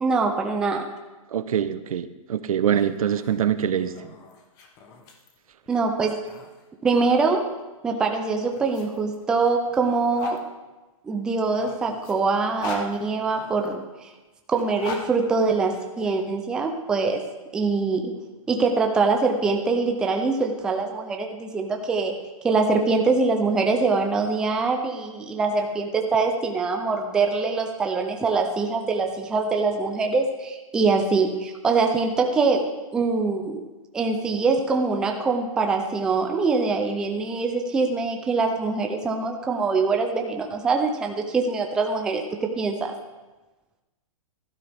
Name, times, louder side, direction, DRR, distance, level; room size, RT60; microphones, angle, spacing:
voice 1, 0.0-0.9 5.7-6.2 6.8-7.5 7.8-10.4 11.1-14.1 14.5-17.2 17.5-18.1 18.5-22.1 22.4-33.6 33.9-42.2 42.6-42.9, right 4 dB, 5° right, 3 dB, 0.4 m, -23 dB
voice 2, 1.3-4.1, right 9 dB, 80° right, 13 dB, 0.8 m, -24 dB
sound 1, 2.6-7.3 8.2-10.4 11.3-13.7 14.5-16.1, left 3 dB, 20° left, 1.0 m, -40 dB
15.0 x 12.5 x 3.5 m, 1.1 s
hypercardioid pair, 170°, 18 cm